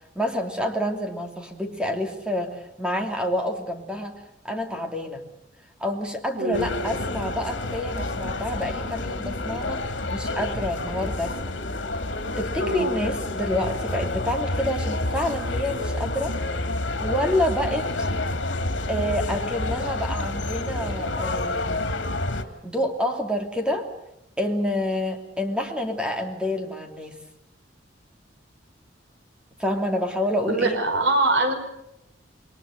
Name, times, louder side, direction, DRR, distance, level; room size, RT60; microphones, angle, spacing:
voice 1, 0.1-5.2 5.8-9.8 10.1-11.6 12.4-16.3 17.0-18.1 18.9-22.0 22.6-23.9 24.4-27.2 29.6-30.8, left 1 dB, 5° right, 3 dB, 3.0 m, -28 dB
voice 2, 6.4-6.7 12.5-13.0 30.5-31.5, right 2 dB, 85° right, 6 dB, 5.3 m, -23 dB
sound 1, 6.5-22.4, left 2 dB, 80° left, 2.6 m, -29 dB
28.0 x 22.0 x 6.8 m, 0.86 s
head